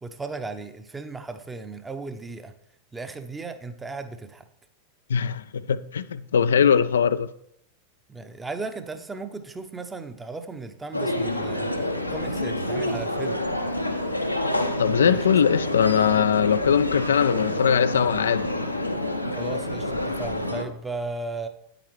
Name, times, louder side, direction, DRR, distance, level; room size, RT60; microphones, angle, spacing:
voice 1, 0.0-2.5 2.9-4.4 8.1-11.7 12.1-13.4 15.1-15.3 19.3-21.5, right 3 dB, 10° right, 0.8 m, -35 dB
voice 2, 5.1-7.3 14.8-18.5, left 7 dB, 65° left, 0.3 m, -21 dB
sound 1, 10.9-20.6, left 1 dB, 90° left, 0.8 m, -28 dB
9.2 x 9.0 x 3.2 m
figure-of-eight pair, 90°, 0 cm